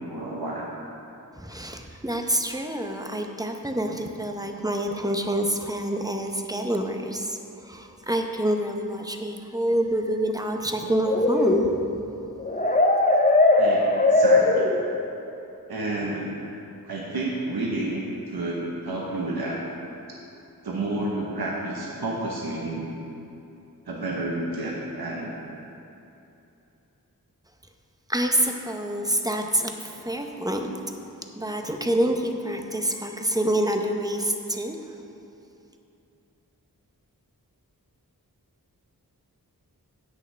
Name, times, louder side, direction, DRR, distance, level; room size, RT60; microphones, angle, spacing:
voice 1, 0.1-0.7 13.6-14.7 15.7-16.3 16.8-19.6 20.6-22.9 23.9-25.6, right 2 dB, 80° right, -3 dB, 1.1 m, -30 dB
voice 2, 1.4-11.6 28.1-30.7 31.4-34.9, right 1 dB, 10° right, 3 dB, 0.8 m, -27 dB
sound 1, 11.0-15.1, left 2 dB, 20° left, 0.7 m, -20 dB
17.0 x 6.4 x 3.4 m, 2.8 s
wide cardioid pair, 70°, 36 cm